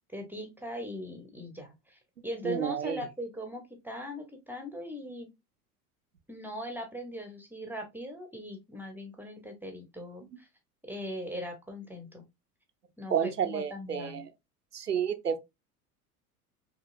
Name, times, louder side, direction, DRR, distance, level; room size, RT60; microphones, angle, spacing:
voice 1, 0.1-5.3 6.3-10.5 10.9-12.2 13.0-14.2, left 1 dB, 5° right, 0.6 m, -40 dB
voice 2, 2.4-3.0 13.1-14.3 14.7-15.4, right 8 dB, 90° right, 0.6 m, -30 dB
4.7 x 2.8 x 2.4 m
figure-of-eight pair, 80°, 45 cm